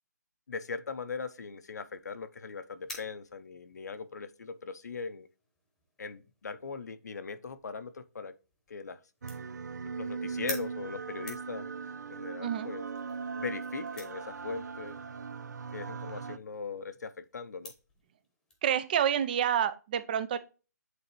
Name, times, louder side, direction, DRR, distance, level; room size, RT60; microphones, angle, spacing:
voice 1, 0.5-5.3 6.0-8.3 8.7-9.0 9.9-11.7 12.1-12.8 13.4-15.0 15.7-17.7, left 5 dB, 75° left, 0.8 m, -40 dB
sound 1, 0.9-18.6, left 2 dB, 5° left, 1.1 m, -51 dB
sound 2, 9.2-16.4, right 5 dB, 75° right, 0.6 m, -39 dB
voice 2, 12.4-12.7 18.6-20.4, right 9 dB, 30° right, 0.5 m, -28 dB
8.2 x 3.9 x 3.1 m
hypercardioid pair, 160°, 9 cm